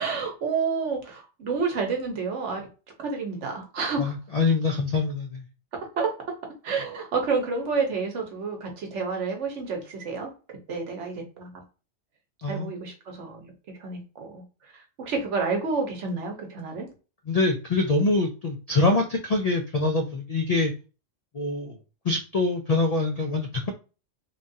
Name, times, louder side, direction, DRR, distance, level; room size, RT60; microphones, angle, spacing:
voice 1, 0.0-2.7 3.0-4.1 6.0-6.1 6.6-10.3 10.7-11.6 12.5-13.5 13.8-14.4 15.0-16.9, right 4 dB, 75° right, 2 dB, 1.2 m, -29 dB
voice 2, 4.0-5.5 12.4-12.7 17.3-20.7 21.3-21.8 22.0-23.7, left 3 dB, 85° left, 3 dB, 0.3 m, -24 dB
3.2 x 2.3 x 2.6 m, 0.33 s
omnidirectional pair, 1.3 m